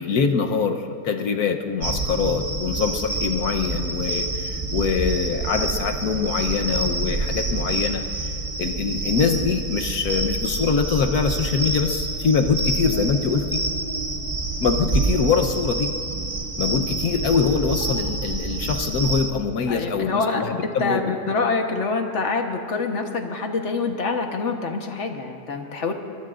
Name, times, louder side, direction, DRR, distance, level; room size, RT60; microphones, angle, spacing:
voice 1, 0.0-8.3 8.6-13.6 14.6-15.9 16.6-21.1, left 5 dB, 65° left, 5 dB, 1.3 m, -23 dB
sound 1, 1.8-19.3, right 2 dB, 35° right, 0.5 m, -27 dB
voice 2, 19.7-25.9, left 4 dB, 50° left, 4 dB, 1.3 m, -26 dB
23.0 x 22.5 x 2.5 m, 2.4 s
omnidirectional pair, 1.8 m